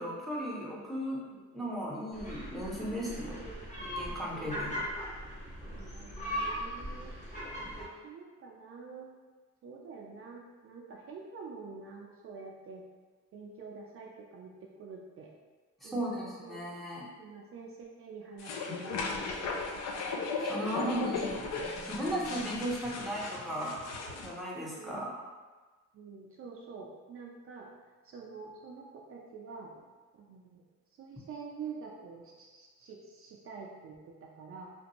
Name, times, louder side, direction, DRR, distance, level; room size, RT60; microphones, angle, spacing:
voice 1, 0.0-1.2 1.5-3.4 3.8-4.8 15.8-17.1 20.4-21.6 21.9-23.8 24.2-25.1, equal, ahead, -4 dB, 0.6 m, -36 dB
sound 1, 2.1-7.9, equal, 25° left, 0.9 m, -39 dB
voice 2, 3.3-4.0 4.3-4.9 5.7-7.1 7.7-9.1 9.6-12.8 13.3-15.3 15.8-16.6 17.2-19.5 20.1-20.3 20.6-21.4 22.4-22.6 24.8-25.0 25.9-27.7 28.0-29.7 30.1-30.6 30.9-34.7, right 5 dB, 50° right, -2 dB, 0.4 m, -47 dB
sound 2, 18.4-24.3, left 4 dB, 60° left, 0.4 m, -36 dB
sound 3, 18.9-24.3, left 1 dB, 80° left, 1.4 m, -51 dB
2.5 x 2.2 x 2.9 m, 1.3 s
cardioid pair, 90°, 30 cm